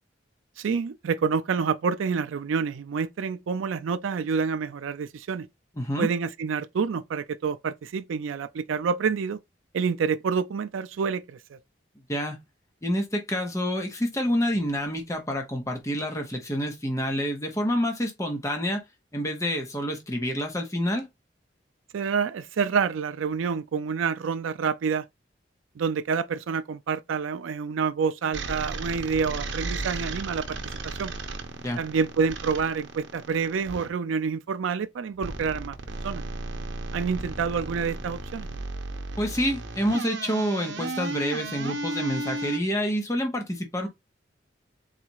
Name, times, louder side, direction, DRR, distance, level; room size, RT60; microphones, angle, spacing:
voice 1, 0.6-5.5 6.0-9.4 9.7-11.6 21.9-25.0 25.8-30.6 30.8-31.1 31.8-35.8 36.0-36.2 36.9-38.5, right 6 dB, 90° right, 0.4 m, -28 dB
voice 2, 5.8-6.1 12.1-12.4 12.8-18.8 19.1-21.1 31.6-31.8 39.2-43.9, equal, 15° left, 0.9 m, -28 dB
sound 1, 28.3-33.9 35.2-42.6, right 2 dB, 70° right, 0.8 m, -34 dB
4.0 x 2.4 x 4.5 m
head